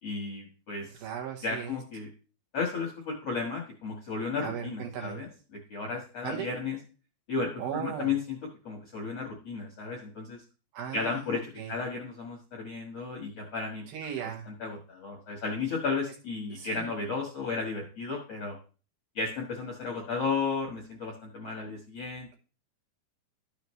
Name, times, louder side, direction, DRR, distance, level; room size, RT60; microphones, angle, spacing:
voice 1, 0.0-1.0 1.4-2.1 2.5-6.8 7.3-8.4 8.6-10.4 10.9-13.8 14.2-18.6 19.1-22.3, left 4 dB, 60° left, -1 dB, 1.6 m, -34 dB
voice 2, 0.9-1.8 4.4-5.2 6.2-6.5 7.6-8.1 10.7-11.7 13.9-14.5 16.5-16.9, right 8 dB, 70° right, 1 dB, 2.6 m, -37 dB
12.0 x 6.8 x 3.1 m, 0.36 s
omnidirectional pair, 5.0 m